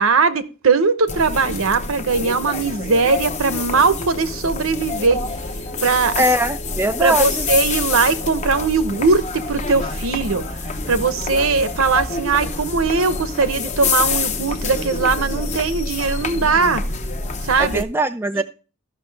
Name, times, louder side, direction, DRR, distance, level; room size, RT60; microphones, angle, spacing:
voice 1, 0.0-5.2 5.8-6.2 7.0-10.4 10.9-16.8 17.4-17.8 18.3-18.4, right 4 dB, 75° right, 0.8 m, -19 dB
sound 1, 1.1-17.8, left 4 dB, 35° left, 0.8 m, -27 dB
voice 2, 6.2-7.5 17.6-18.4, right 1 dB, 10° right, 0.4 m, -21 dB
14.0 x 5.9 x 3.3 m
head